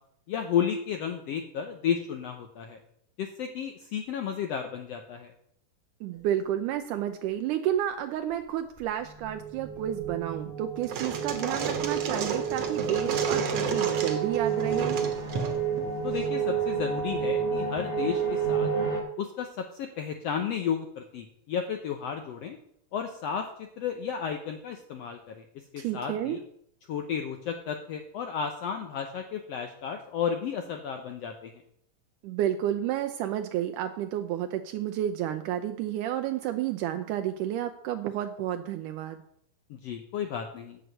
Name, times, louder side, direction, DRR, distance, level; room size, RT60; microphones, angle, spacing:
voice 1, 0.3-2.8 3.2-5.3 16.0-18.7 19.2-22.6 22.9-25.4 25.7-26.4 26.9-31.6 39.7-40.8, left 7 dB, 75° left, 5 dB, 1.5 m, -33 dB
voice 2, 6.0-15.0 25.8-26.4 32.2-39.2, right 11 dB, 80° right, 7 dB, 2.0 m, -31 dB
sound 1, 9.0-19.0, right 6 dB, 25° left, 1.4 m, -30 dB
sound 2, 10.8-16.3, right 6 dB, 60° right, 1.9 m, -32 dB
7.9 x 7.9 x 6.6 m, 0.70 s
omnidirectional pair, 3.8 m